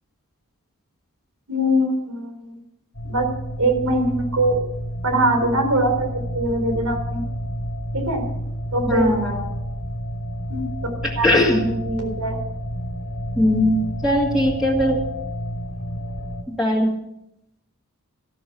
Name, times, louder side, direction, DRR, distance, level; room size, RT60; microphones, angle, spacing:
voice 1, 1.5-2.5 3.0-3.3 3.6-4.6 5.0-6.1 6.3-7.2 7.9-8.2 8.7-9.1 10.5-10.6 11.2-12.4, right 1 dB, 80° right, 5 dB, 4.0 m, -22 dB
sound 1, 2.9-16.4, equal, 70° left, 2.4 m, -30 dB
voice 2, 8.9-9.4 11.0-11.6 13.4-15.0 16.5-16.9, left 1 dB, ahead, -3 dB, 2.3 m, -20 dB
14.5 x 12.5 x 6.1 m, 0.79 s
head